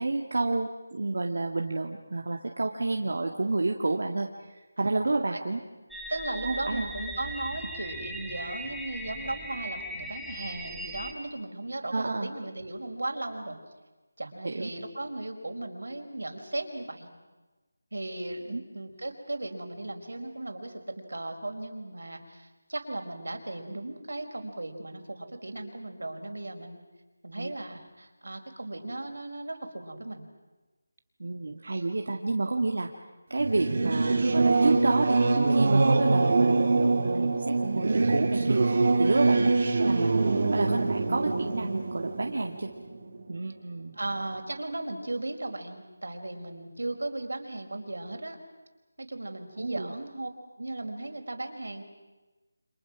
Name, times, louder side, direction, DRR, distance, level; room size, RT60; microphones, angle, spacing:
voice 1, 0.0-5.6 6.4-6.9 11.9-12.3 14.4-14.7 18.5-18.6 27.4-27.5 31.2-32.9 33.3-38.6 39.0-39.5 39.8-42.7 43.3-44.0 49.6-49.9, right 2 dB, 60° right, 2 dB, 2.0 m, -30 dB
sound 1, 5.9-11.1, right 1 dB, ahead, 1.0 m, -39 dB
voice 2, 6.1-13.6 14.2-17.1 17.9-26.8 27.2-30.3 39.2-39.6 43.9-48.4 49.0-50.3 50.6-51.8, right 2 dB, 85° right, 4 dB, 4.7 m, -36 dB
Singing / Musical instrument, 33.4-43.5, right 3 dB, 45° right, 3.4 m, -24 dB
29.5 x 26.5 x 6.1 m, 1.2 s
figure-of-eight pair, 175°, 0 cm